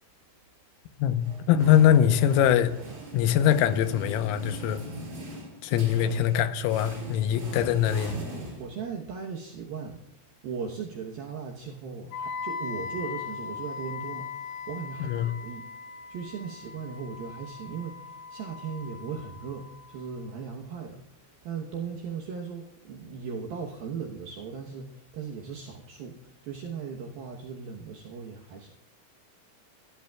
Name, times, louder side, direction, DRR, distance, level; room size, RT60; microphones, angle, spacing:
voice 1, 1.0-2.7 3.1-4.8 5.6-8.2 15.0-15.3, left 10 dB, 90° left, 9 dB, 3.5 m, -22 dB
sound 1, 1.2-9.1, right 1 dB, 35° right, 6.1 m, -41 dB
voice 2, 8.6-10.0 10.4-15.6 16.1-28.7, right 6 dB, 75° right, 0 dB, 2.2 m, -38 dB
Wind instrument woodwind instrument, 12.1-20.0, left 5 dB, 65° left, 3.0 m, -39 dB
22.0 x 13.0 x 2.3 m, 0.81 s
omnidirectional pair, 5.8 m